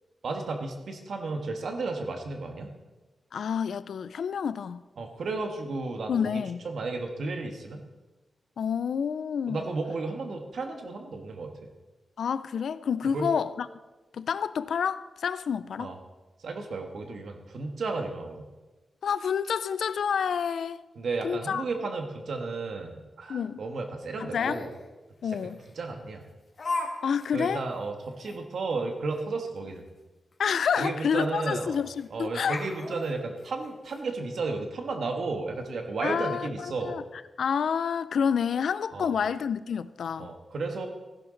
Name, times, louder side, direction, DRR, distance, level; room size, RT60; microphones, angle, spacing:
voice 1, 0.2-2.7 5.0-7.8 9.5-11.7 13.1-13.3 15.8-16.0 16.4-18.5 21.0-24.7 25.2-26.2 27.3-29.8 30.8-31.8 32.1-37.0 38.9-39.1 40.2-40.9, right 3 dB, 70° right, 1.5 m, -33 dB
voice 2, 3.3-4.8 6.1-6.7 8.6-9.7 12.2-13.7 14.1-15.9 19.0-20.8 21.2-21.6 23.3-23.6 24.2-24.6 25.2-25.6 27.0-27.6 30.4-32.6 36.0-37.0 37.4-40.3, left 7 dB, 80° left, 0.4 m, -28 dB
Laughter, 24.3-24.8 25.6-25.7 26.6-26.9 27.2-27.3 27.8-27.9 28.2-28.4 30.3-30.4 30.7-30.8 31.7-32.0 32.4-34.0, left 3 dB, 45° left, 1.9 m, -35 dB
15.0 x 11.0 x 3.9 m
wide cardioid pair, 145°, 0 cm